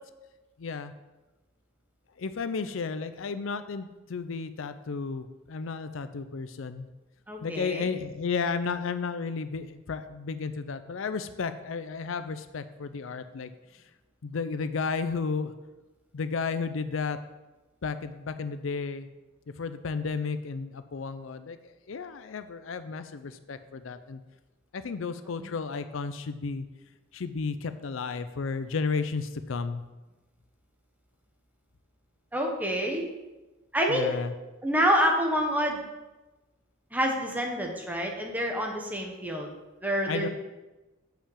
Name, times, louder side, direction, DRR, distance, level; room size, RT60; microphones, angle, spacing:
voice 1, 0.6-0.9 2.2-6.9 7.4-13.8 14.2-15.5 16.1-17.2 17.8-19.1 19.6-21.6 21.9-24.2 24.7-26.7 27.1-29.8 33.9-34.3 40.1-40.3, left 5 dB, 70° left, 11 dB, 0.5 m, -33 dB
voice 2, 7.3-7.9 25.4-25.5 32.3-33.1 33.7-34.2 34.6-35.8 36.9-39.5 39.8-40.3, equal, 10° right, 1 dB, 1.3 m, -27 dB
6.8 x 5.7 x 7.3 m, 1.1 s
head